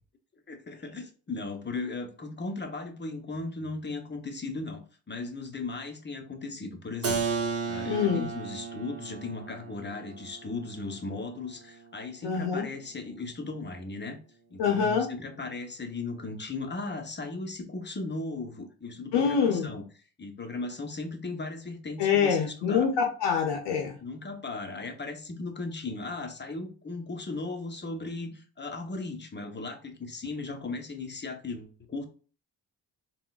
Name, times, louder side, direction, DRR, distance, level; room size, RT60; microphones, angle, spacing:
voice 1, 0.5-7.2 7.6-14.2 14.5-19.9 20.2-22.9 24.0-32.1, left 3 dB, 25° left, 5 dB, 0.7 m, -37 dB
Keyboard (musical), 7.0-12.6, right 5 dB, 35° right, 0.8 m, -35 dB
voice 2, 7.9-8.3 12.2-12.7 14.6-15.1 19.1-19.7 22.0-24.0, left 6 dB, 75° left, 4 dB, 0.6 m, -25 dB
3.6 x 2.2 x 2.3 m, 0.38 s
supercardioid pair, 50°, 42 cm